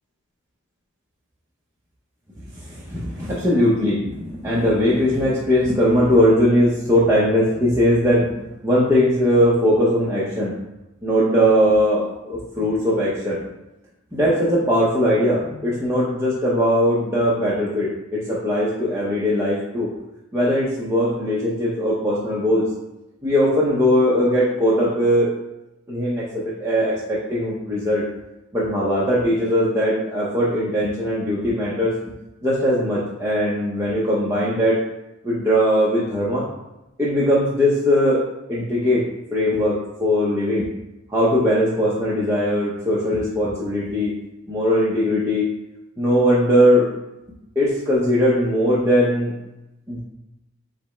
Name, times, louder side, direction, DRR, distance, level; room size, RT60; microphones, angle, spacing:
voice 1, 2.5-8.3 8.6-10.5 11.0-13.4 14.1-19.9 20.3-22.7 23.2-25.3 25.9-28.0 28.5-31.9 32.4-34.8 35.2-36.5 37.0-38.2 38.5-40.7 41.1-44.1 44.5-45.5 46.0-46.9 47.6-49.3 49.9-50.0, equal, 15° right, -8 dB, 0.6 m, -20 dB
5.0 x 2.1 x 4.2 m, 0.94 s
head